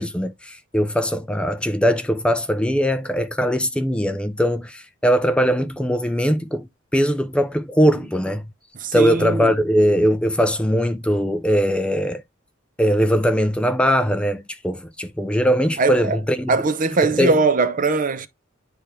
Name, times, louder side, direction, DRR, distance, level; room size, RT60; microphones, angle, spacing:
voice 1, 0.0-6.7 6.9-8.4 8.9-12.2 12.8-16.5 17.2-17.4, equal, 5° left, 0.4 m, -20 dB
voice 2, 8.7-9.5 15.8-16.2 16.5-18.3, right 3 dB, 40° right, 0.6 m, -20 dB
10.0 x 3.5 x 3.0 m
head